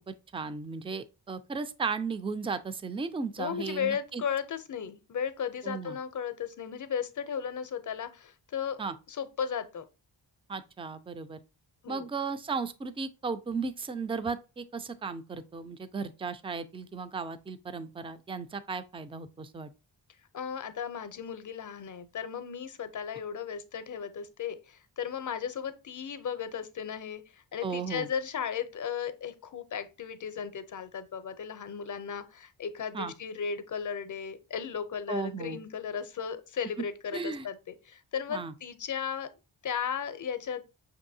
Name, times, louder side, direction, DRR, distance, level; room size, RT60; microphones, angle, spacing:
voice 1, 0.1-4.2 5.6-6.0 8.8-8.9 10.5-11.4 11.9-19.7 27.6-28.1 32.9-33.1 35.1-35.6 37.1-37.5 38.3-38.5, right 4 dB, 15° right, 0.3 m, -35 dB
voice 2, 3.4-8.8 9.1-9.8 11.8-12.1 20.3-39.3 39.6-40.6, left 7 dB, 40° left, 0.6 m, -35 dB
5.9 x 2.7 x 2.6 m
wide cardioid pair, 75°, 46 cm